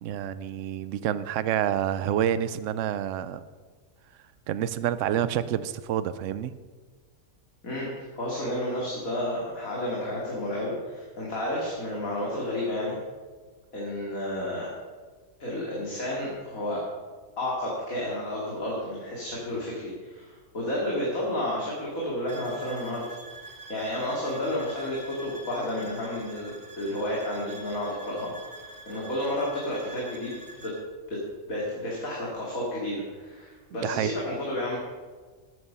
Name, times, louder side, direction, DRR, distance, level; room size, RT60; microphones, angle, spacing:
voice 1, 0.0-3.4 4.5-6.5 33.8-34.1, right 10 dB, 65° right, 14 dB, 0.9 m, -28 dB
voice 2, 7.6-12.9 13.7-14.7 15.4-16.8 17.4-23.0 23.3-23.4 23.7-30.8 31.1-31.2 31.5-34.8, left 1 dB, 65° left, -4 dB, 2.7 m, -31 dB
sound 1, 22.3-30.8, right 2 dB, 40° right, 1.6 m, -46 dB
12.5 x 9.5 x 5.5 m, 1.5 s
omnidirectional pair, 1.6 m